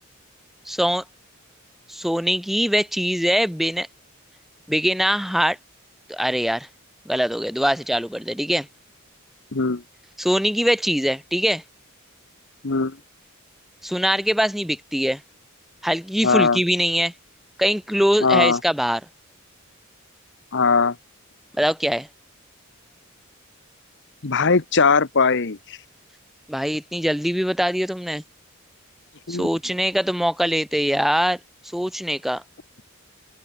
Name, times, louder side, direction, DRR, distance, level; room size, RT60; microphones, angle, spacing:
voice 1, 0.6-1.0 1.9-3.9 4.7-5.6 6.1-6.7 7.1-8.7 10.2-11.6 13.8-15.2 15.8-17.1 17.6-19.0 21.6-22.1 26.5-28.2 29.3-31.4 31.7-32.4, equal, ahead, 0.8 m, -22 dB
voice 2, 9.5-9.8 12.6-13.0 16.2-16.6 18.2-18.6 20.5-21.0 24.2-25.8 29.3-29.5, left 4 dB, 55° left, 1.1 m, -19 dB
head